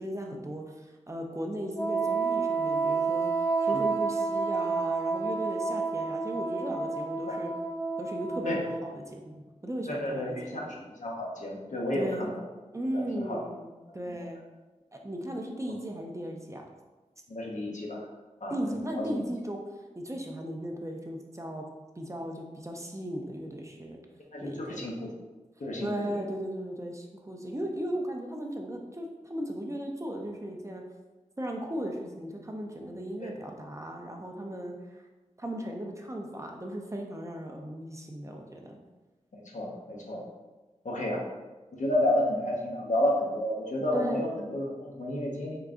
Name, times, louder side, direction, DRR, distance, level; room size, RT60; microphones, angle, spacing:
voice 1, 0.0-3.3 3.6-7.5 8.0-10.7 11.9-12.3 12.7-14.4 14.9-16.6 18.5-19.6 20.0-21.6 22.0-24.0 24.4-25.0 25.8-30.8 31.4-35.0 35.4-38.8 43.9-44.2, right 1 dB, 25° right, 1 dB, 0.6 m, -36 dB
Wind instrument woodwind instrument, 1.7-9.1, right 4 dB, 25° left, 0.6 m, -30 dB
voice 2, 9.9-10.6 10.9-12.3 12.9-13.4 17.3-18.0 18.4-18.8 19.1-19.2 24.3-25.1 25.6-26.2 33.2-33.3 39.3-40.2 40.8-41.2 41.8-45.6, left 1 dB, 75° left, -2 dB, 0.8 m, -31 dB
3.8 x 2.3 x 3.6 m, 1.2 s
wide cardioid pair, 45°, 13 cm